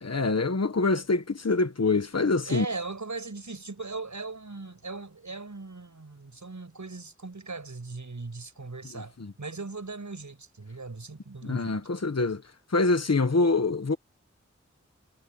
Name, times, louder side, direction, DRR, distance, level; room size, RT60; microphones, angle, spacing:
voice 1, 0.0-2.6 9.2-9.3 11.4-12.4 12.7-14.0, left 3 dB, 60° left, 1.5 m, -25 dB
voice 2, 2.5-11.8, right 3 dB, 80° right, 7.2 m, -39 dB
wide cardioid pair, 40°, 29 cm